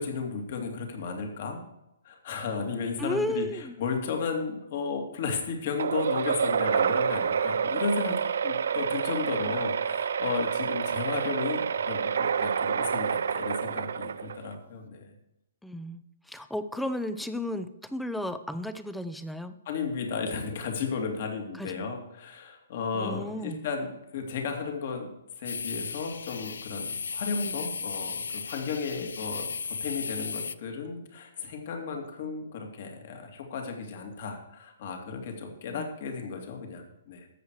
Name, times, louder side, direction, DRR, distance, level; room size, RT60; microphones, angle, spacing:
voice 1, 0.0-1.6 2.0-15.2 19.6-37.3, left 5 dB, 50° left, 3 dB, 2.6 m, -34 dB
voice 2, 3.0-3.7 15.6-19.6 21.6-21.9 22.9-23.6 35.7-35.9, left 1 dB, ahead, 11 dB, 0.6 m, -34 dB
sound 1, 5.8-14.6, right 7 dB, 75° right, 0.5 m, -28 dB
sound 2, 25.4-30.5, left 5 dB, 90° left, 0.5 m, -35 dB
13.0 x 8.2 x 4.8 m, 0.87 s
hypercardioid pair, 155°, 0 cm